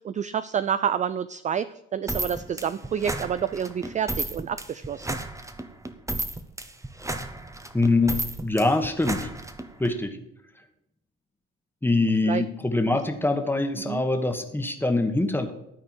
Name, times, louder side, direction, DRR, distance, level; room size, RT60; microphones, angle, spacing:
voice 1, 0.0-5.2 12.3-12.4 13.9-14.0, right 8 dB, 25° right, 14 dB, 0.4 m, -28 dB
sound 1, 2.1-9.9, right 2 dB, 10° right, 1.0 m, -33 dB
voice 2, 7.7-8.1 8.4-9.3 9.8-10.2 11.8-15.5, left 2 dB, 5° left, 6 dB, 1.4 m, -24 dB
12.5 x 4.4 x 7.2 m, 0.82 s
hypercardioid pair, 70°, 29 cm